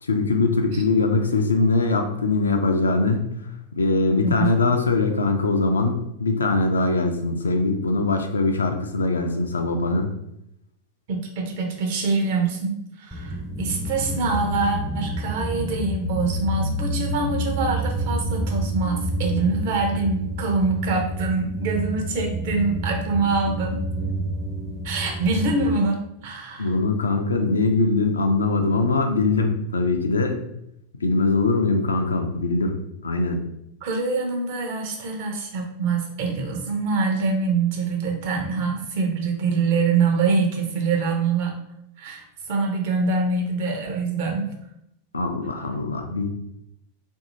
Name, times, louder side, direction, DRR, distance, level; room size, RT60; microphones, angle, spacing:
voice 1, 0.0-3.3 3.8-10.1 26.6-30.4 31.0-33.4 45.1-46.3, left 3 dB, 75° left, 5 dB, 0.3 m, -22 dB
voice 2, 4.1-4.6 11.1-23.8 24.8-26.7 33.8-41.6 42.0-44.5, right 4 dB, 50° right, 2 dB, 0.6 m, -25 dB
sound 1, 13.1-25.8, right 1 dB, 5° right, 0.5 m, -28 dB
2.6 x 2.6 x 2.6 m, 0.80 s
figure-of-eight pair, 90°, 0 cm